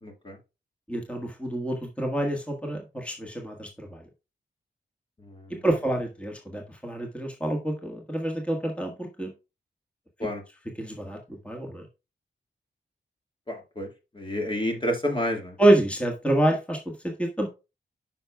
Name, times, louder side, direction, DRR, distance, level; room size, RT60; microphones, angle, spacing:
voice 1, 0.0-0.4 5.2-5.6 10.2-10.4 13.5-13.9 14.1-15.6, left 1 dB, 30° left, 2 dB, 1.8 m, -30 dB
voice 2, 0.9-4.0 5.5-9.3 10.8-11.2 11.4-11.9 15.6-17.5, right 1 dB, 5° left, 1 dB, 1.5 m, -27 dB
9.2 x 5.8 x 2.3 m, 0.28 s
cardioid pair, 65°, 18 cm